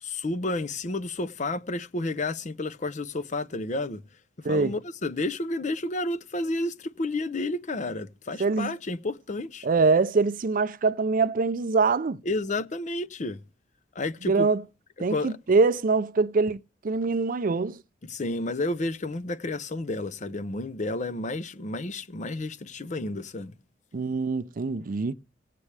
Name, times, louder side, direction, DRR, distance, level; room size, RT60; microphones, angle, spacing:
voice 1, 0.0-4.0 4.5-9.7 12.3-13.4 13.9-14.5 15.1-15.4 18.0-23.5, left 2 dB, 40° left, 0.6 m, -31 dB
voice 2, 8.4-8.7 9.6-12.2 14.3-14.6 15.0-17.8 23.9-25.1, right 4 dB, 50° right, 0.5 m, -24 dB
18.0 x 8.4 x 3.3 m
head